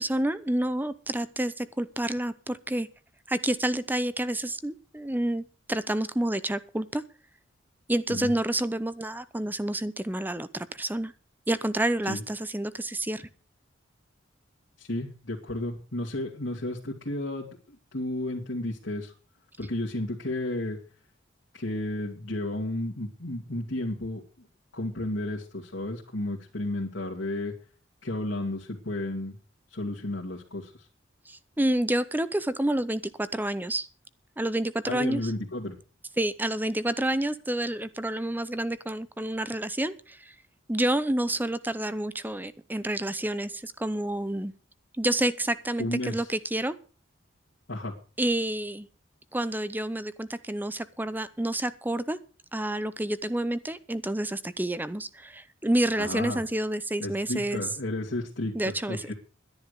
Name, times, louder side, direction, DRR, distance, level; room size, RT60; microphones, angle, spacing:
voice 1, 0.0-2.9 3.3-7.0 7.9-11.1 11.5-13.3 31.3-33.9 34.4-35.3 36.2-40.3 40.7-44.5 45.0-46.8 48.2-48.9 49.3-52.2 52.5-57.6 58.5-59.1, right 1 dB, 10° right, 14 dB, 0.6 m, -29 dB
voice 2, 14.8-19.1 19.6-20.8 21.5-24.5 24.7-27.5 28.0-29.4 29.7-30.9 34.9-35.8 45.8-46.3 47.7-47.9 56.0-56.4 57.0-59.1, left 1 dB, 70° left, -3 dB, 2.4 m, -32 dB
12.0 x 10.5 x 6.7 m, 0.38 s
head